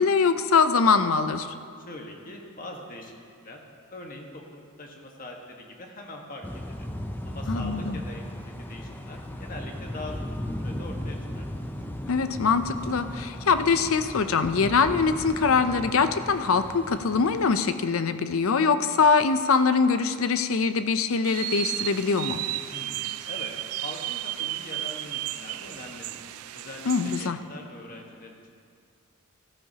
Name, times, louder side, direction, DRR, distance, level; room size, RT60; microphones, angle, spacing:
voice 1, 0.0-1.5 7.5-8.0 12.1-22.4 26.9-27.4, left 5 dB, 70° left, 10 dB, 0.5 m, -23 dB
voice 2, 1.8-3.2 3.4-3.6 3.9-6.9 7.2-10.3 10.6-11.4 22.7-23.5 23.8-26.2 26.5-28.5, left 2 dB, 40° left, 1 dB, 1.4 m, -42 dB
sound 1, 6.4-17.6, left 1 dB, 10° left, 0.5 m, -36 dB
sound 2, 21.2-27.3, right 15 dB, 85° right, 0.4 m, -33 dB
16.0 x 14.0 x 2.8 m, 2.3 s
head